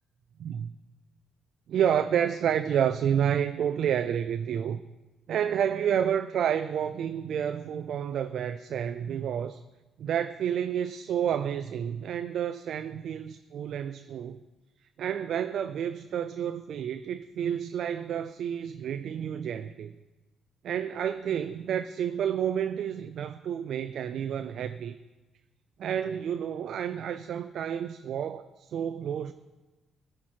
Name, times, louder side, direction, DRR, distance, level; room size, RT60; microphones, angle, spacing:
voice 1, 1.7-4.8 5.3-9.6 10.0-14.4 15.0-19.9 20.6-25.0 25.8-29.3, right 9 dB, 70° right, 10 dB, 0.4 m, -30 dB
14.5 x 5.9 x 4.5 m, 1.2 s
cardioid pair, 90°, 0 cm